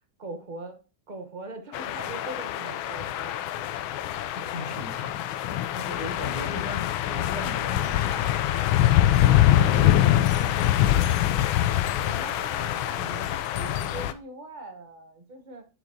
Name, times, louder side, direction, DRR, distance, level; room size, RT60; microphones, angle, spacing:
voice 1, 0.2-0.8 1.1-3.4 6.3-6.7 9.1-9.9 11.9-15.6, right 2 dB, 35° right, 0.7 m, -41 dB
sound 1, 1.7-14.1, left 12 dB, 85° left, 1.4 m, -24 dB
voice 2, 4.4-5.2 5.7-8.5 9.2-10.8 12.3-12.4, left 2 dB, 55° left, 1.7 m, -38 dB
7.3 x 6.0 x 2.8 m
omnidirectional pair, 2.2 m